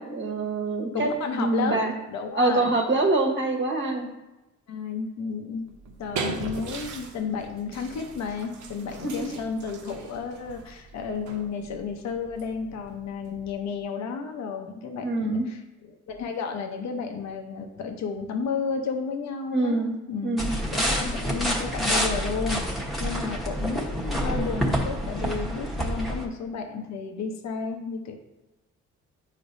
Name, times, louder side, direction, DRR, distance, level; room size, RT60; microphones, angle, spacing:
voice 1, 0.0-1.1 1.4-1.9 2.4-4.1 9.0-9.3 15.0-15.5 19.5-19.9 20.2-20.5, right 2 dB, 40° right, 2 dB, 1.3 m, -25 dB
voice 2, 0.9-1.8 2.1-2.7 4.7-5.7 6.0-15.6 15.9-22.7 23.0-28.2, left 5 dB, 65° left, 4 dB, 0.9 m, -32 dB
sound 1, 5.7-13.8, right 4 dB, 75° right, 0.8 m, -39 dB
sound 2, 20.4-26.3, equal, ahead, 1.2 m, -27 dB
8.3 x 5.2 x 2.7 m, 1.0 s
cardioid pair, 90°, 30 cm